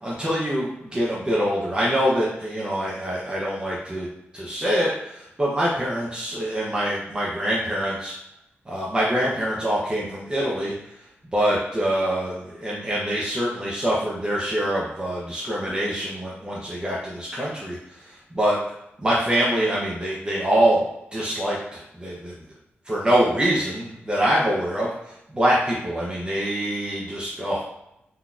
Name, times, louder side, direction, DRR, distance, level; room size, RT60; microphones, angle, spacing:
voice 1, 0.0-4.1 4.3-8.1 8.7-10.7 11.3-18.6 19.0-20.8 21.1-22.3 22.9-27.6, equal, 20° right, -6 dB, 0.6 m, -24 dB
3.9 x 2.7 x 2.4 m, 0.84 s
wide cardioid pair, 135°, 4 cm